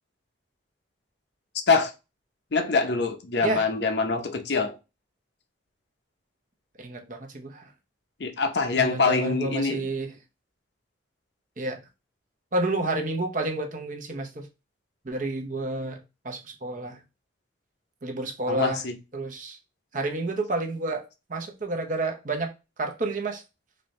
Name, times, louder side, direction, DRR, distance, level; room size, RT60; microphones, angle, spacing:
voice 1, 2.5-4.7 8.2-9.8 18.5-18.9, left 4 dB, 55° left, 0.7 m, -24 dB
voice 2, 6.8-7.7 8.7-10.2 11.6-11.8 12.5-14.5 15.0-16.0 16.2-17.0 18.0-18.8 19.1-19.6 19.9-21.0 21.3-22.5 22.8-23.4, right 2 dB, 40° right, 0.7 m, -30 dB
4.3 x 2.7 x 3.1 m
head